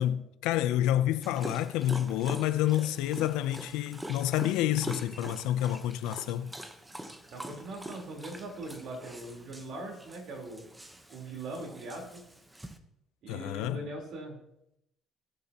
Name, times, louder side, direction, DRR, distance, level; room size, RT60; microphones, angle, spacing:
voice 1, 0.0-6.5 13.3-13.9, left 12 dB, 90° left, 0.6 m, -29 dB
Dog, 1.2-12.8, right 1 dB, 10° right, 1.0 m, -44 dB
voice 2, 7.3-10.7 11.1-12.2 13.2-14.4, right 2 dB, 65° right, 4.0 m, -41 dB
17.5 x 7.6 x 3.0 m
cardioid pair, 105°, 0 cm